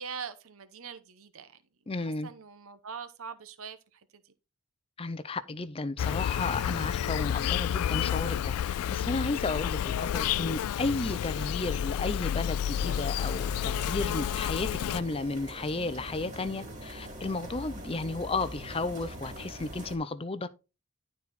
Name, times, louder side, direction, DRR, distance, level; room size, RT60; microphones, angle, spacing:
voice 1, 0.0-1.6 2.0-4.3, right 6 dB, 70° right, 0.8 m, -43 dB
voice 2, 1.9-2.3 5.0-20.5, left 3 dB, 25° left, 0.5 m, -33 dB
Insect, 6.0-15.0, left 10 dB, 80° left, 0.3 m, -30 dB
sound 1, 12.7-20.0, equal, 30° right, 2.6 m, -43 dB
11.5 x 4.2 x 4.1 m
head